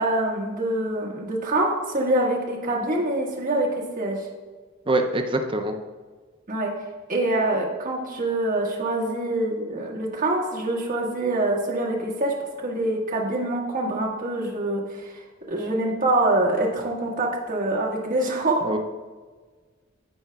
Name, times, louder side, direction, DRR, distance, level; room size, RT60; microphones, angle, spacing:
voice 1, 0.0-3.7 3.9-4.3 6.5-6.7 7.1-15.1 15.5-18.6, right 2 dB, 40° right, -4 dB, 1.5 m, -25 dB
voice 2, 4.9-5.7 18.6-18.8, right 2 dB, 25° right, 5 dB, 0.5 m, -24 dB
14.5 x 4.9 x 2.3 m, 1.4 s
head